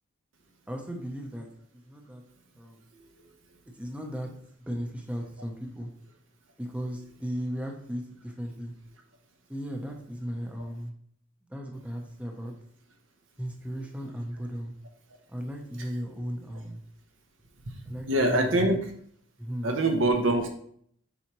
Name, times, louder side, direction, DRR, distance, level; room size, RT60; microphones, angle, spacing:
voice 1, 0.7-1.5 1.7-2.2 2.6-2.8 3.7-4.3 4.7-5.9 6.6-8.7 9.5-10.9 11.5-12.5 13.4-14.7 15.3-16.8 17.8-18.8 19.4-19.7, equal, 5° right, 2 dB, 0.8 m, -36 dB
voice 2, 2.9-3.3 17.7-17.8 18.1-18.9 19.6-20.5, right 1 dB, 70° right, 3 dB, 1.0 m, -25 dB
7.2 x 4.8 x 3.1 m, 0.64 s
head